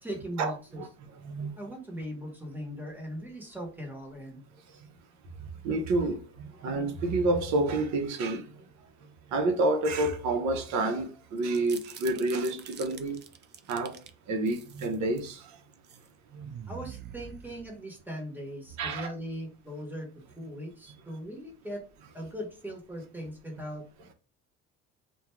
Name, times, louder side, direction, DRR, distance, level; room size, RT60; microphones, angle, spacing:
voice 1, 0.0-0.9 1.6-4.4 16.7-20.1 20.4-21.8 22.1-23.9, equal, 5° right, 1.0 m, -39 dB
voice 2, 1.2-1.5 5.6-6.2 6.6-8.4 9.3-13.2 13.7-14.0 14.3-15.4 16.3-16.5 18.8-19.1, right 2 dB, 60° right, 0.8 m, -28 dB
sound 1, 11.4-14.1 14.5-15.3 15.7-16.1 16.4-18.0, right 8 dB, 35° right, 0.4 m, -46 dB
2.4 x 2.3 x 3.0 m
supercardioid pair, 90°, 31 cm